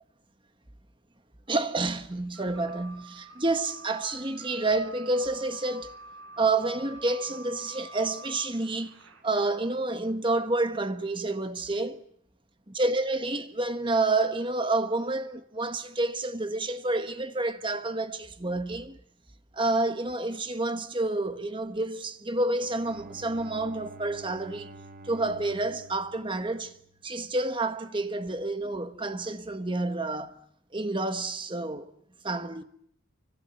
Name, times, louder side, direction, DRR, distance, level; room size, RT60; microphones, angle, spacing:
voice 1, 1.5-6.0 6.4-9.0 9.2-12.0 12.7-19.0 19.5-24.7 25.0-26.7 27.0-30.3 30.7-31.9 32.2-32.6, right 2 dB, 25° right, 1.5 m, -29 dB
sound 1, 2.3-9.2, right 2 dB, 85° right, 5.1 m, -48 dB
Bowed string instrument, 22.3-27.5, right 1 dB, 40° right, 2.6 m, -49 dB
28.5 x 25.5 x 7.9 m
head